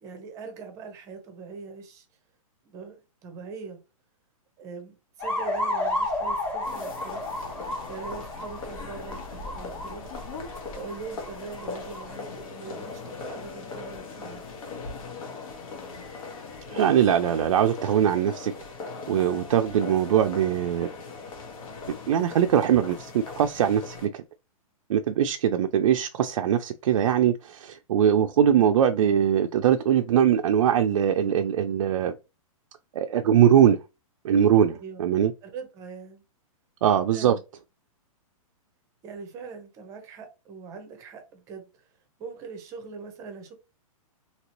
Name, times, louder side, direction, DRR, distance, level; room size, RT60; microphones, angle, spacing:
voice 1, 0.0-2.1 2.6-3.8 4.6-7.2 7.9-10.1 10.7-14.4 34.8-35.0 35.4-36.2 37.1-37.4 39.0-41.7 42.2-43.5, right 5 dB, 20° right, 0.7 m, -41 dB
sound 1, 5.2-12.2, left 1 dB, 5° left, 1.0 m, -32 dB
sound 2, 6.6-24.1, left 4 dB, 65° left, 1.2 m, -40 dB
voice 2, 16.7-18.5 19.1-20.9 22.1-24.2 24.9-32.1 32.9-33.8 34.2-35.3 36.8-37.4, right 9 dB, 60° right, 0.4 m, -22 dB
2.9 x 2.9 x 2.9 m
hypercardioid pair, 160°, 18 cm